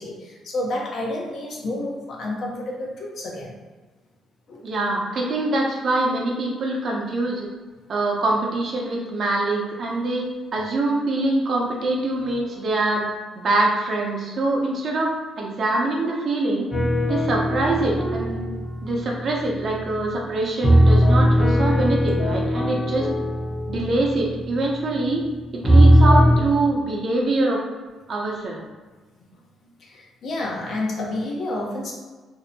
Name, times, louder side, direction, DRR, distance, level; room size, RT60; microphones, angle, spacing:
voice 1, 0.0-3.5 4.5-4.6 17.7-17.8 29.8-31.9, left 1 dB, 60° left, -2 dB, 0.6 m, -30 dB
voice 2, 4.6-7.5 7.9-10.3 10.5-13.1 13.4-16.7 17.1-18.4 18.8-23.1 23.7-25.2 25.5-27.6 28.1-28.6, right 2 dB, 55° right, -1 dB, 0.6 m, -24 dB
sound 1, 16.7-20.1 20.6-25.2 25.6-26.4, equal, 15° left, 0.6 m, -19 dB
2.6 x 2.1 x 2.6 m, 1.3 s
cardioid pair, 90°, 0 cm